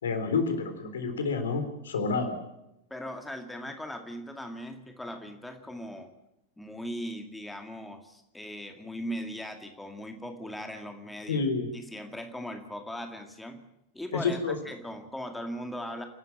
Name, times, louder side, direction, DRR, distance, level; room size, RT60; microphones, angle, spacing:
voice 1, 0.0-2.4 11.3-11.7 14.2-14.6, left 4 dB, 65° left, 8 dB, 3.8 m, -29 dB
voice 2, 2.9-6.1 6.6-11.4 11.7-13.6 13.9-16.0, equal, 5° left, 5 dB, 2.2 m, -39 dB
29.0 x 12.5 x 7.7 m, 0.87 s
figure-of-eight pair, 90°, 0 cm